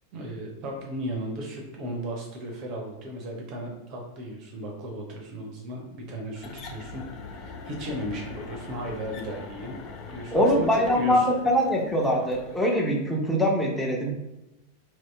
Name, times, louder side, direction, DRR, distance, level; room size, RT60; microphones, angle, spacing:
voice 1, 0.1-9.8 10.1-11.3, equal, 40° right, 1 dB, 0.6 m, -35 dB
sound 1, 6.4-12.8, left 4 dB, 35° left, 0.5 m, -42 dB
voice 2, 10.3-14.1, equal, 5° left, -1 dB, 0.7 m, -23 dB
2.9 x 2.7 x 3.3 m, 0.93 s
figure-of-eight pair, 90°, 0 cm